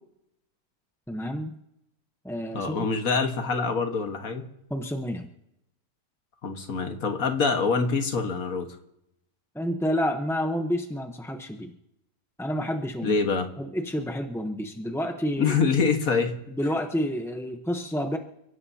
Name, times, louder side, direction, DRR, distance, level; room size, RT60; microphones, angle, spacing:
voice 1, 1.1-1.5 2.2-2.9 4.7-5.3 9.5-11.7 12.4-13.2 13.6-15.5 16.5-18.2, equal, 5° left, 4 dB, 0.4 m, -29 dB
voice 2, 2.5-4.5 6.4-8.7 13.0-13.5 15.4-16.4, left 4 dB, 60° left, 5 dB, 1.8 m, -25 dB
30.0 x 16.5 x 2.8 m, 0.83 s
omnidirectional pair, 1.7 m